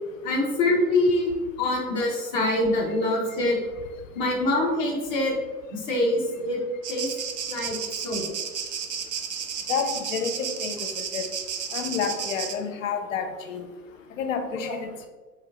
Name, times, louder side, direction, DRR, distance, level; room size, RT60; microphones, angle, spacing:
voice 1, 0.2-1.3 1.6-3.6 4.1-5.3 5.7-6.6 6.9-7.1 7.5-7.8 8.0-8.2 14.6-14.7, left 2 dB, 10° left, -4 dB, 0.4 m, -24 dB
sound 1, 6.8-12.5, right 7 dB, 75° right, 0.6 m, -32 dB
voice 2, 9.7-11.3 11.7-13.6 14.2-15.1, left 6 dB, 55° left, 6 dB, 0.6 m, -30 dB
4.3 x 2.3 x 3.3 m, 1.3 s
figure-of-eight pair, 100°, 49 cm